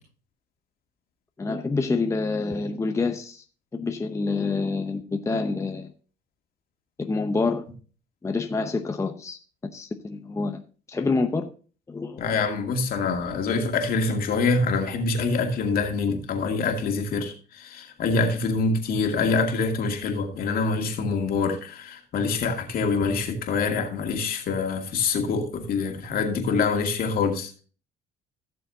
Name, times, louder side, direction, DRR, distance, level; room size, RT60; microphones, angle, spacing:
voice 1, 1.4-3.4 3.7-5.9 7.0-7.6 8.2-9.4 9.7-10.6 10.9-11.5 11.9-12.3, left 3 dB, 15° left, 5 dB, 0.8 m, -27 dB
voice 2, 12.2-27.5, left 4 dB, 60° left, 3 dB, 2.3 m, -25 dB
16.0 x 6.9 x 2.8 m, 0.37 s
cardioid pair, 110°, 17 cm